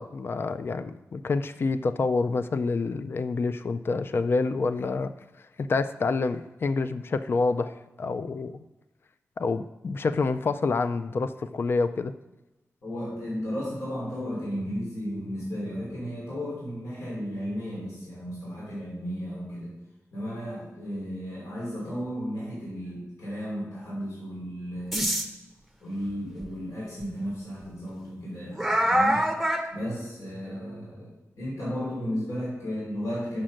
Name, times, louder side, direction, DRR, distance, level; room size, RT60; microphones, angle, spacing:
voice 1, 0.0-5.1 5.6-8.6 9.4-12.1, left 3 dB, 45° left, 11 dB, 0.4 m, -27 dB
voice 2, 12.8-19.7 20.1-25.1 25.8-29.3 29.7-33.4, equal, 75° left, -6 dB, 3.1 m, -34 dB
sound 1, 24.9-25.3 26.4-26.5 27.0-27.1 28.6-29.7, right 1 dB, ahead, 0.8 m, -24 dB
7.4 x 6.4 x 6.4 m, 1.0 s
wide cardioid pair, 165°, 5 cm